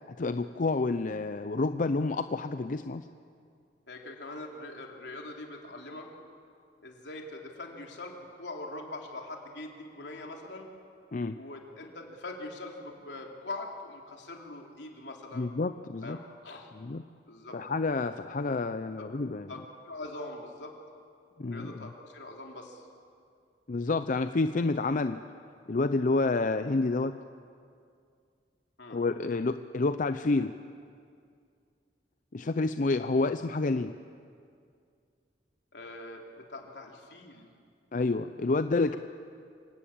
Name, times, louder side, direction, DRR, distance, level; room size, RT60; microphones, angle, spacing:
voice 1, 0.1-3.1 11.1-11.4 15.3-16.2 16.7-17.0 17.5-19.5 21.4-21.9 23.7-25.2 25.7-27.2 28.9-30.5 32.3-33.9 37.9-39.0, left 3 dB, 50° left, 10 dB, 0.5 m, -29 dB
voice 2, 3.9-6.1 6.8-10.7 11.3-15.5 16.0-16.7 17.3-17.6 19.0-19.1 19.5-19.6 19.8-20.7 21.5-22.8 28.8-29.0 35.7-37.5, left 2 dB, 80° left, 1 dB, 3.2 m, -42 dB
26.5 x 17.5 x 8.6 m, 2.3 s
head